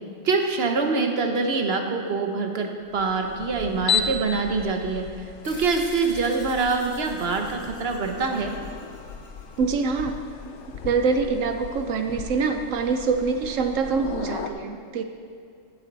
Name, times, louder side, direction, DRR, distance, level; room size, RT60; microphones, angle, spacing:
voice 1, 0.2-5.1 5.4-8.5, right 4 dB, 55° right, 4 dB, 1.2 m, -25 dB
sound 1, 2.9-14.5, left 6 dB, 65° left, 0.9 m, -35 dB
sound 2, 5.4-10.3, left 1 dB, 20° left, 2.4 m, -46 dB
voice 2, 9.6-10.2 10.8-15.0, right 5 dB, 75° right, 6 dB, 1.0 m, -25 dB
15.5 x 7.7 x 4.0 m, 2.3 s
omnidirectional pair, 1.4 m